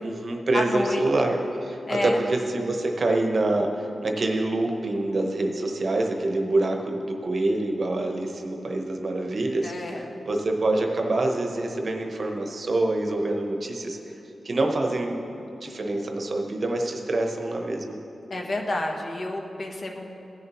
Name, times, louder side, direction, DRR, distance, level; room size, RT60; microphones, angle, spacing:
voice 1, 0.0-14.0 14.4-18.0, right 2 dB, 50° right, 3 dB, 0.9 m, -26 dB
voice 2, 0.5-1.0 1.9-2.2 9.6-10.0 18.3-20.0, left 2 dB, 50° left, 1 dB, 1.0 m, -29 dB
16.0 x 6.8 x 3.0 m, 2.9 s
wide cardioid pair, 120°, 0 cm